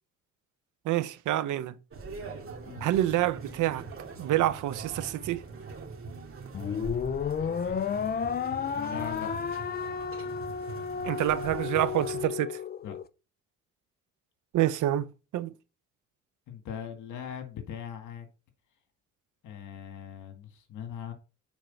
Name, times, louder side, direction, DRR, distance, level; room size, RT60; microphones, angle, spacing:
voice 1, 0.9-1.7 2.8-3.8 4.2-5.4 11.0-12.6 14.5-15.5, right 13 dB, 80° right, 0.7 m, -27 dB
sound 1, 1.9-12.3, right 4 dB, 45° right, 2.2 m, -43 dB
sound 2, 6.5-13.0, left 7 dB, 30° left, 0.5 m, -32 dB
voice 2, 8.7-9.3 12.8-13.0 16.5-18.3 19.4-21.1, left 8 dB, 80° left, 1.9 m, -40 dB
7.2 x 4.5 x 5.6 m
cardioid pair, 90°, 30 cm